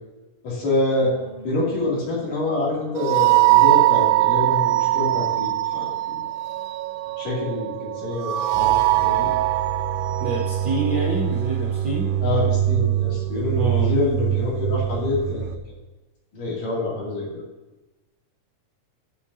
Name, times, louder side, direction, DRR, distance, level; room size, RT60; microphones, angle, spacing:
voice 1, 0.4-1.1 1.4-6.2 7.2-9.3 12.2-15.5 16.3-17.4, left 2 dB, 85° left, -6 dB, 4.4 m, -26 dB
sound 1, 1.0-15.6, right 14 dB, 90° right, 2.2 m, -22 dB
voice 2, 10.2-12.1 13.5-14.0, right 2 dB, 65° right, -4 dB, 1.1 m, -27 dB
11.0 x 8.2 x 2.8 m, 1.1 s
omnidirectional pair, 3.6 m